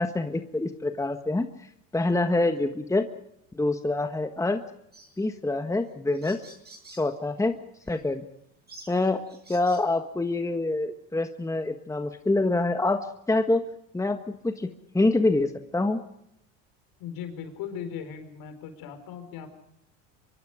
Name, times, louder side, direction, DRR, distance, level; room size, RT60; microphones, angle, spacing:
voice 1, 0.0-1.5 1.9-3.1 3.5-4.6 5.2-6.4 7.0-7.6 7.9-8.2 8.9-9.2 9.5-13.6 13.9-14.7 14.9-16.0, left 2 dB, 10° left, 7 dB, 1.5 m, -26 dB
sound 1, 4.9-5.2 5.8-5.9 6.1-7.1 7.8-8.0 8.7-9.9, right 2 dB, 25° right, 7.6 m, -49 dB
voice 2, 17.0-19.5, left 8 dB, 60° left, 8 dB, 4.8 m, -38 dB
24.5 x 23.5 x 5.1 m, 0.79 s
hypercardioid pair, 85°, 39 cm